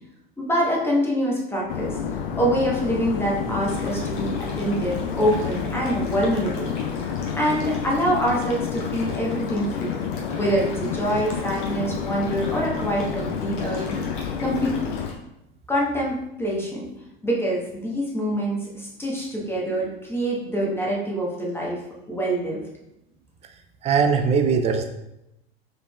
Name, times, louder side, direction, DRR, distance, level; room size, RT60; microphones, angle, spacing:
voice 1, 0.4-2.0 2.4-6.7 7.3-10.1 10.4-14.0 14.4-14.8 15.7-16.9 17.2-21.8 22.1-22.6, equal, 10° left, -3 dB, 1.1 m, -25 dB
sound 1, 1.7-15.1, left 7 dB, 65° left, 0.5 m, -29 dB
Car / Idling, 2.7-7.8, left 1 dB, 85° left, 1.1 m, -42 dB
sound 2, 3.6-15.1, left 3 dB, 45° left, 1.2 m, -42 dB
voice 2, 23.8-24.9, right 5 dB, 20° right, 6 dB, 0.5 m, -20 dB
5.0 x 3.9 x 2.3 m, 0.86 s
figure-of-eight pair, 80°, 29 cm